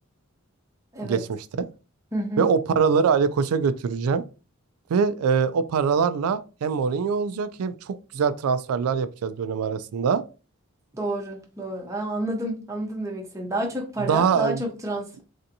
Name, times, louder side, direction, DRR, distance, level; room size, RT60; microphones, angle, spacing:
voice 1, 1.0-1.4 2.4-4.2 4.9-10.2 14.0-14.6, right 6 dB, 90° right, 0.3 m, -23 dB
voice 2, 2.1-2.5 10.9-15.2, right 1 dB, 15° right, 0.6 m, -29 dB
3.3 x 2.7 x 2.6 m
head